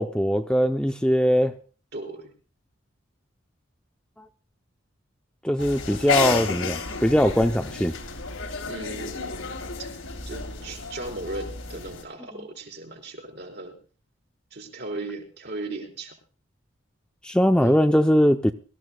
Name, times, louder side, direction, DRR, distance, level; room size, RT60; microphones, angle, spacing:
voice 1, 0.0-1.5 5.4-7.9 17.2-18.5, equal, 5° left, 6 dB, 0.5 m, -21 dB
voice 2, 1.9-2.3 8.6-9.9 10.3-13.8 14.5-16.2 17.5-17.8, right 2 dB, 50° right, 3 dB, 4.4 m, -37 dB
sound 1, 5.6-12.0, left 4 dB, 85° left, 3.0 m, -31 dB
23.5 x 14.5 x 2.3 m, 0.40 s
head